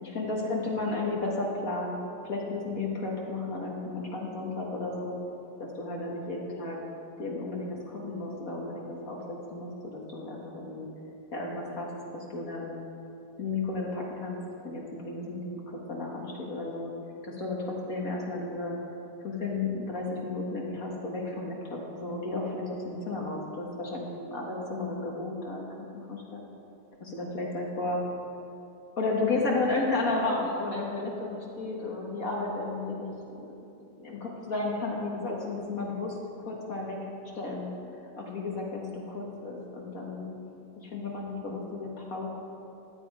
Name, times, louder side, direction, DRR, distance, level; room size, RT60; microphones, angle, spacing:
voice 1, 0.0-5.2 5.6-6.8 7.2-10.9 11.3-12.8 13.4-16.9 17.2-18.8 19.2-26.4 27.0-28.0 29.0-33.5 34.0-37.0 37.3-37.7 38.1-40.3 40.8-42.3, left 2 dB, 55° left, -2 dB, 2.0 m, -33 dB
15.5 x 10.5 x 4.8 m, 2.8 s
omnidirectional pair, 1.8 m